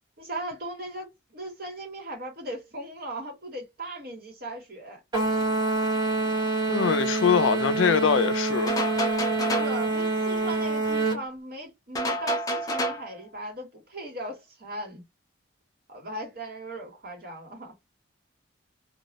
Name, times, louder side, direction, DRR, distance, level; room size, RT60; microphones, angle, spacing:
voice 1, 0.2-5.0 9.6-15.0 15.9-17.7, right 1 dB, 50° right, 1.2 m, -38 dB
sound 1, 5.1-11.2, right 2 dB, 20° right, 0.7 m, -26 dB
voice 2, 6.7-8.7, left 6 dB, 75° left, 0.4 m, -23 dB
sound 2, 8.7-9.8 11.9-13.1, equal, 20° left, 0.4 m, -28 dB
2.3 x 2.0 x 2.8 m
head